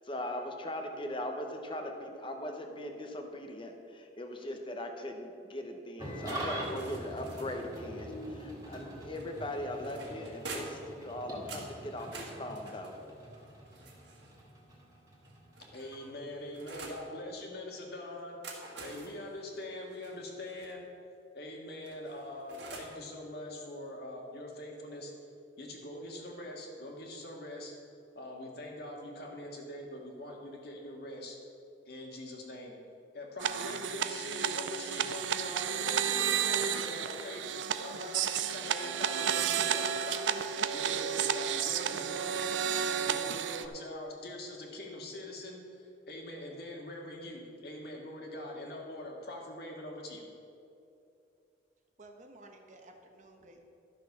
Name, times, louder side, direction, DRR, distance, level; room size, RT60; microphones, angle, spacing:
voice 1, 0.1-13.0, left 1 dB, 30° left, 4 dB, 1.0 m, -40 dB
Engine starting / Idling, 6.0-16.6, right 1 dB, 20° right, 2.0 m, -44 dB
sound 1, 6.2-7.8 9.1-10.9 11.5-14.4 15.2-17.1 18.2-20.7 21.8-23.0, right 3 dB, 70° right, 1.8 m, -48 dB
voice 2, 15.7-20.9 21.3-25.1 25.6-27.7 28.2-31.4 31.9-32.8 33.1-40.3 40.7-42.5 43.0-50.2, left 1 dB, 60° left, 0 dB, 1.8 m, -43 dB
sound 2, 33.4-43.7, right 8 dB, 90° right, 0.5 m, -32 dB
voice 3, 52.0-53.6, right 2 dB, 45° right, 3 dB, 1.0 m, -54 dB
12.0 x 6.5 x 5.9 m, 2.6 s
head